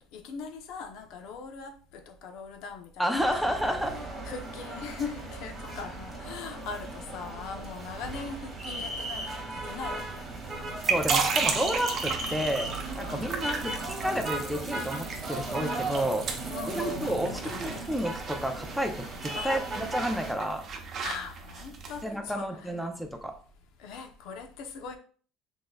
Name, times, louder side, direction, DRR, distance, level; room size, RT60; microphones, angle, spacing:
voice 1, 0.0-10.1 12.3-12.5 13.0-13.4 16.5-17.9 19.3-19.5 21.0-22.7 23.8-25.0, left 5 dB, 70° left, 0.8 m, -41 dB
voice 2, 3.0-4.0 10.8-12.7 13.0-16.3 16.8-20.6 22.0-23.3, equal, ahead, 0.6 m, -31 dB
sound 1, 3.2-20.3, right 2 dB, 20° right, 2.0 m, -37 dB
sound 2, 10.4-22.0, right 5 dB, 40° right, 0.8 m, -34 dB
6.0 x 3.9 x 2.3 m
cardioid pair, 135°, 0 cm